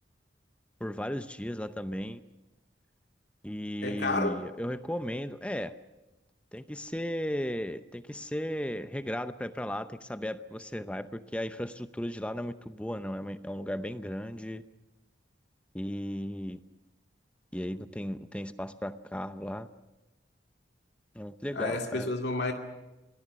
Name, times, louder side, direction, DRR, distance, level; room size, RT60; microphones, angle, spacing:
voice 1, 0.8-2.2 3.4-5.7 6.5-14.6 15.7-16.6 17.5-19.7 21.1-22.1, equal, 5° left, 0.7 m, -35 dB
voice 2, 3.8-4.4 21.5-22.5, left 2 dB, 65° left, 2.4 m, -30 dB
26.5 x 20.5 x 6.9 m
head